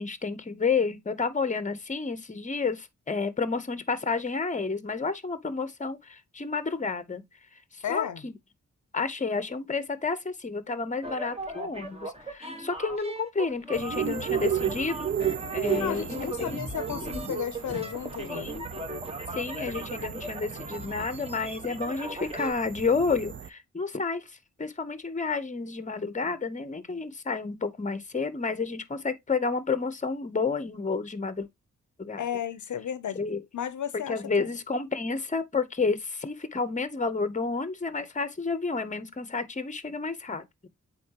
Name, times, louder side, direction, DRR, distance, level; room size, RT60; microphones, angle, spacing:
voice 1, 0.0-7.2 7.7-8.3 8.9-16.5 18.3-18.7 19.3-31.5 32.0-32.2 33.1-33.4 34.1-40.7, left 4 dB, 25° left, 0.8 m, -30 dB
voice 2, 7.8-8.2 15.7-18.5 32.2-33.2 33.5-34.5, left 9 dB, 75° left, 0.6 m, -33 dB
sound 1, 11.0-22.5, right 1 dB, 20° right, 1.3 m, -38 dB
sound 2, 13.7-23.5, right 9 dB, 40° right, 0.5 m, -34 dB
8.4 x 4.0 x 2.8 m
wide cardioid pair, 90°, 30 cm